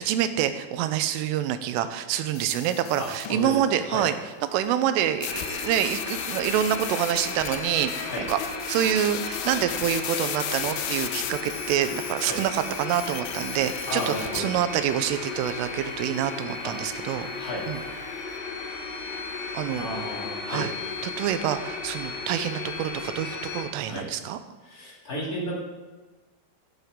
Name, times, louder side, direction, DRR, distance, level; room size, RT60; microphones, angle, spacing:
voice 1, 0.0-4.1 4.5-8.4 8.7-17.3 17.7-17.8 19.5-19.9 20.5-20.7 21.0-24.4, right 10 dB, 85° right, 10 dB, 3.2 m, -27 dB
sound 1, 2.4-3.4 5.2-14.4, left 12 dB, 80° left, 3.1 m, -35 dB
voice 2, 3.0-3.6 3.9-4.0 8.1-8.2 12.2-12.4 13.9-14.6 16.6-16.7 17.4-17.8 19.8-20.6 23.8-24.0 24.6-25.6, equal, 25° left, -4 dB, 2.1 m, -33 dB
sound 2, 5.2-23.6, left 4 dB, 55° left, 2.7 m, -35 dB
16.0 x 11.5 x 3.8 m, 1.2 s
omnidirectional pair, 5.8 m